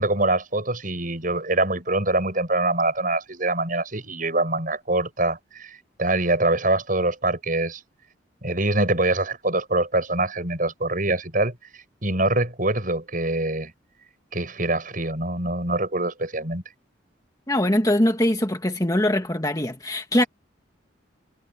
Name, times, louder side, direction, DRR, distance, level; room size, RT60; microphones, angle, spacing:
voice 1, 0.0-7.8 8.4-11.6 12.0-13.7 14.3-16.6, right 2 dB, 45° right, 7.5 m, -24 dB
voice 2, 17.5-20.2, left 1 dB, 20° left, 2.0 m, -22 dB
head